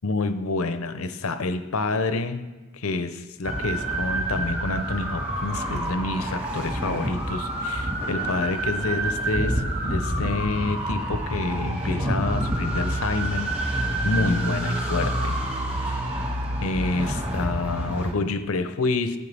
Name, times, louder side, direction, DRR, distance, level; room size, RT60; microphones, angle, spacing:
voice 1, 0.0-2.5 2.7-15.4 15.9-16.1 16.6-19.2, left 3 dB, 80° left, 10 dB, 0.7 m, -28 dB
sound 1, 3.4-18.1, right 1 dB, 25° right, 1.6 m, -27 dB
13.5 x 9.0 x 3.4 m, 1.3 s
head